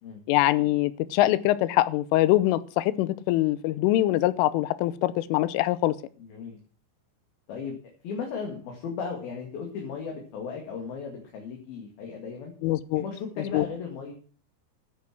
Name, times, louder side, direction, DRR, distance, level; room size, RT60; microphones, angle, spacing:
voice 1, 0.3-6.0 12.6-13.0 13.5-13.6, left 16 dB, 90° left, 3.4 m, -23 dB
voice 2, 6.2-6.6 7.5-7.8 8.0-12.5 13.0-14.1, left 5 dB, 55° left, 3.7 m, -36 dB
13.0 x 9.8 x 6.1 m
omnidirectional pair, 5.6 m